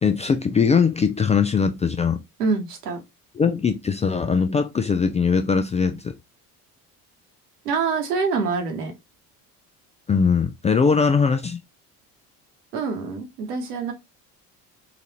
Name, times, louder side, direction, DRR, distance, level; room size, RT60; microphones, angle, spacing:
voice 1, 0.0-2.2 3.4-6.1 10.1-11.6, left 5 dB, 15° left, 0.3 m, -21 dB
voice 2, 2.4-3.0 7.6-8.9 12.7-13.9, right 4 dB, 80° right, 1.2 m, -25 dB
3.9 x 2.5 x 2.8 m
hypercardioid pair, 60°, 46 cm